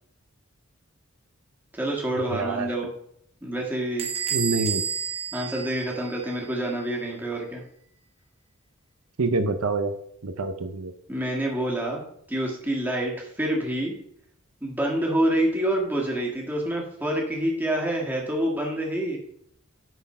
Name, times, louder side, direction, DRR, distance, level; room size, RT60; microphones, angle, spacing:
voice 1, 1.7-2.9 3.4-4.1 5.3-7.6 11.1-14.0 14.6-19.2, right 1 dB, 10° right, -2 dB, 1.7 m, -27 dB
voice 2, 2.3-2.7 4.3-4.8 9.2-9.9 10.2-10.9, right 3 dB, 85° right, 9 dB, 0.7 m, -26 dB
Bell / Door, 4.0-6.5, right 7 dB, 30° right, 1.1 m, -30 dB
9.4 x 4.2 x 5.4 m, 0.72 s
head